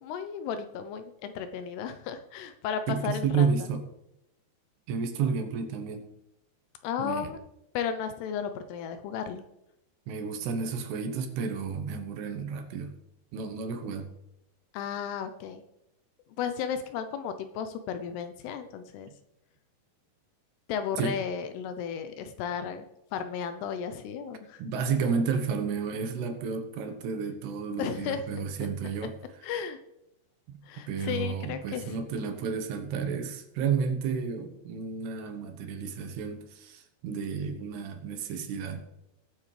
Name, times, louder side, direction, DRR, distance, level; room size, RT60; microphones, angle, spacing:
voice 1, 0.0-3.5 6.8-7.4 7.7-9.4 14.7-15.6 16.4-19.1 20.7-22.9 23.1-24.6 27.8-28.2 29.4-29.8 30.7-32.0, left 7 dB, 80° left, 9 dB, 2.6 m, -34 dB
voice 2, 2.9-3.9 4.9-6.0 7.0-7.3 10.1-13.0 13.3-14.1 21.0-21.2 24.6-29.1 30.5-30.6 30.9-38.8, right 6 dB, 75° right, 6 dB, 3.0 m, -31 dB
20.0 x 8.4 x 3.3 m, 0.85 s
omnidirectional pair, 5.1 m